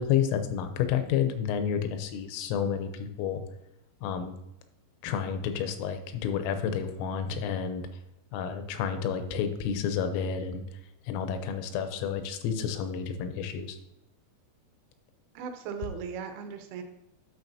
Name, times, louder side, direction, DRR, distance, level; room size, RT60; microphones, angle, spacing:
voice 1, 0.0-3.4 4.0-4.4 5.0-7.8 8.3-10.7 11.1-13.8, left 8 dB, 85° left, 8 dB, 3.4 m, -30 dB
voice 2, 15.4-16.8, right 6 dB, 80° right, 6 dB, 3.3 m, -37 dB
10.5 x 6.8 x 2.7 m, 0.86 s
omnidirectional pair, 5.7 m